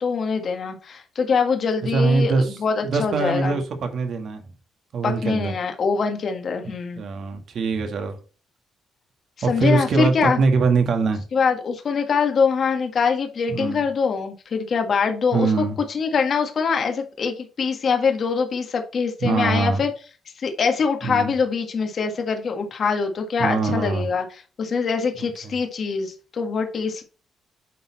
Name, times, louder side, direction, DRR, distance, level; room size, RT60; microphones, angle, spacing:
voice 1, 0.0-3.6 5.0-7.0 9.4-10.4 11.3-15.5 15.9-19.9 20.4-27.0, left 5 dB, 50° left, 1.7 m, -23 dB
voice 2, 1.9-2.6 2.8-4.4 4.9-5.5 7.0-8.2 9.4-11.2 13.5-13.9 15.3-15.8 19.2-19.8 21.0-21.3 23.4-24.1, right 4 dB, 60° right, 1.8 m, -22 dB
9.2 x 4.1 x 4.3 m
cardioid pair, 90°, 0 cm